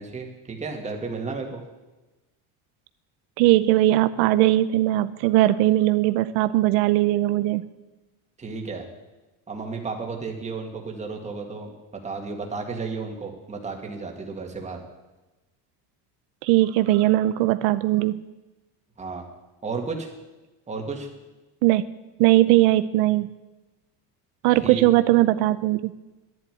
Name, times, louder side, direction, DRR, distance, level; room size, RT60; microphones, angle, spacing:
voice 1, 0.0-1.6 8.4-8.9 9.5-11.7 12.0-14.8 19.0-19.3 19.6-20.1 20.7-21.1 24.6-24.8, right 4 dB, 15° right, 2 dB, 2.2 m, -33 dB
voice 2, 3.4-7.6 16.4-18.2 21.6-21.8 22.2-23.3 24.4-25.9, right 16 dB, 85° right, 13 dB, 0.7 m, -19 dB
11.5 x 11.0 x 9.4 m, 1.1 s
cardioid pair, 165°, 42 cm